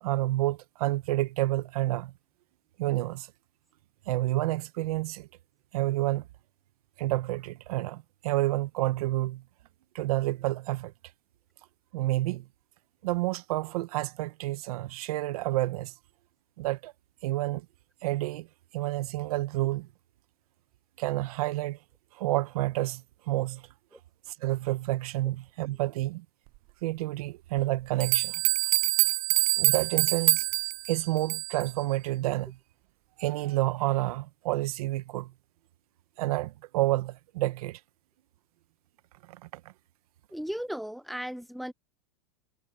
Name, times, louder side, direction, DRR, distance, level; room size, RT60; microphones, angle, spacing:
voice 1, 0.0-2.1 2.8-3.3 4.1-5.3 5.7-6.3 7.0-9.4 9.9-10.9 11.9-12.5 13.0-15.9 16.6-16.9 17.2-17.6 18.0-18.5 18.7-19.9 21.0-21.8 22.1-23.7 24.3-26.2 26.8-28.4 29.6-30.5 30.9-32.6 33.2-35.3 36.2-37.8 39.3-39.5, right 17 dB, 75° right, 1.5 m, -29 dB
sound 1, 28.0-31.7, right 28 dB, 45° right, 0.5 m, -26 dB
voice 2, 40.3-41.7, equal, ahead, 0.5 m, -36 dB
supercardioid pair, 135°, 19 cm